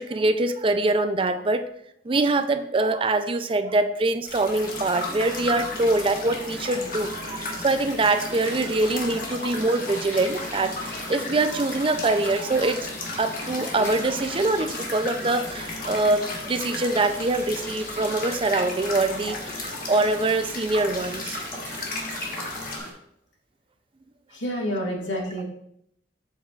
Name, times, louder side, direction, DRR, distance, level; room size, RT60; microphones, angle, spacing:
voice 1, 0.0-1.6 2.0-12.9 13.2-21.4, right 2 dB, 30° right, 9 dB, 0.4 m, -24 dB
sound 1, 4.2-22.8, left 2 dB, 50° left, 1.4 m, -35 dB
sound 2, 4.6-22.9, left 1 dB, 15° left, 2.1 m, -39 dB
voice 2, 24.3-25.4, equal, 85° left, -2 dB, 1.8 m, -29 dB
7.7 x 7.4 x 2.4 m, 0.74 s
head